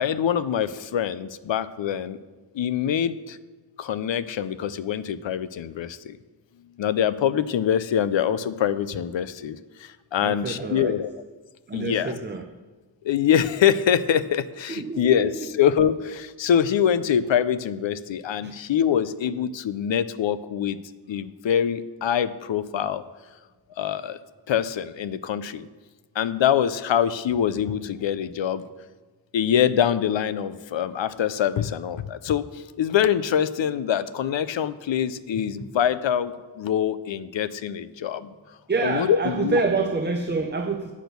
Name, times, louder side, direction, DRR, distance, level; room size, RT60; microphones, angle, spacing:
voice 1, 0.0-2.2 2.5-3.4 3.8-6.2 6.8-11.1 11.7-12.2 13.0-20.8 21.1-23.0 23.8-24.2 24.5-25.7 26.1-28.7 29.3-38.3 38.8-39.6, left 9 dB, 80° left, 15 dB, 0.5 m, -24 dB
voice 2, 10.2-10.9 11.7-12.4 14.7-15.3 18.4-18.5 38.7-40.9, right 4 dB, 25° right, 6 dB, 0.6 m, -27 dB
8.3 x 6.1 x 6.8 m, 1.3 s
wide cardioid pair, 90°, 45 cm